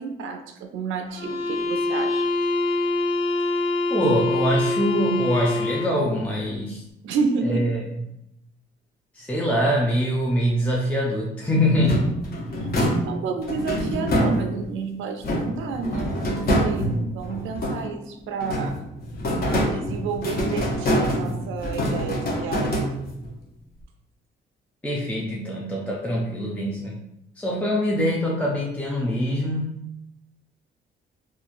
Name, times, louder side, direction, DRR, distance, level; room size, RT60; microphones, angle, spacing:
voice 1, 0.0-2.3 7.0-7.8 13.0-18.8 19.7-22.9, right 5 dB, 80° right, 5 dB, 0.4 m, -30 dB
sound 1, 1.1-6.0, left 2 dB, 30° left, 1.0 m, -25 dB
voice 2, 3.9-6.8 7.4-7.8 9.1-12.2 24.8-27.0 27.4-29.7, equal, 5° left, -3 dB, 0.4 m, -24 dB
sound 2, 11.7-14.8 15.2-18.0 18.4-23.3, equal, 50° left, 0.7 m, -25 dB
3.0 x 2.3 x 2.5 m, 0.83 s
cardioid pair, 90°, 20 cm